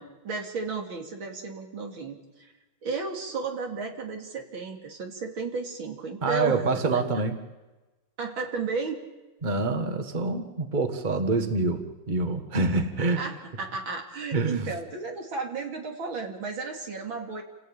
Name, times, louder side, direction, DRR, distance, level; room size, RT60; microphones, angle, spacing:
voice 1, 0.0-2.5 2.8-6.6 6.9-7.0 8.2-9.0 13.2-17.4, right 4 dB, 90° right, 2 dB, 3.4 m, -33 dB
voice 2, 6.2-7.4 9.4-13.2 14.3-14.7, right 3 dB, 25° right, 6 dB, 1.7 m, -26 dB
29.0 x 16.0 x 8.9 m, 1.2 s
omnidirectional pair, 2.1 m